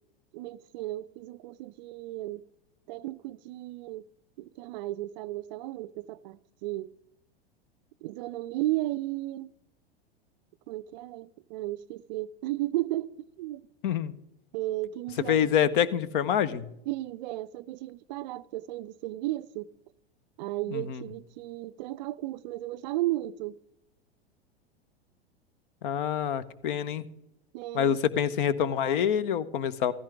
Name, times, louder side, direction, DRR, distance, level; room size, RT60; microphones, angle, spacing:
voice 1, 0.3-2.4 2.9-4.0 4.4-6.9 8.0-9.5 10.7-13.7 14.5-15.5 16.9-19.7 20.4-23.6 27.5-28.0, right 16 dB, 45° right, 0.5 m, -34 dB
voice 2, 13.8-14.1 15.3-16.7 20.7-21.0 25.8-27.0 27.7-29.9, left 9 dB, 55° left, 1.0 m, -26 dB
15.0 x 15.0 x 3.5 m
figure-of-eight pair, 95°, 31 cm